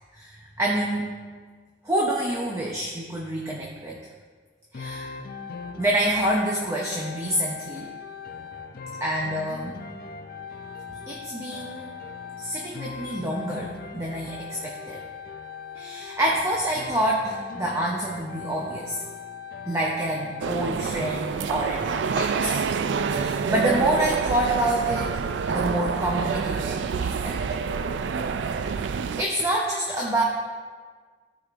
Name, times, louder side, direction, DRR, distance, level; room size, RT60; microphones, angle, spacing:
voice 1, 0.1-1.1 1.8-4.0 4.7-5.2 5.8-7.9 9.0-9.8 11.1-11.9 12.4-15.0 15.8-19.0 19.7-22.6 23.1-25.2 25.5-27.6 28.5-28.7 29.2-30.2, right 1 dB, 15° right, -3 dB, 0.7 m, -27 dB
sound 1, 4.7-20.8, left 5 dB, 55° left, 0.5 m, -39 dB
sound 2, 20.4-29.2, right 5 dB, 80° right, 0.3 m, -27 dB
13.5 x 5.0 x 2.5 m, 1.5 s
head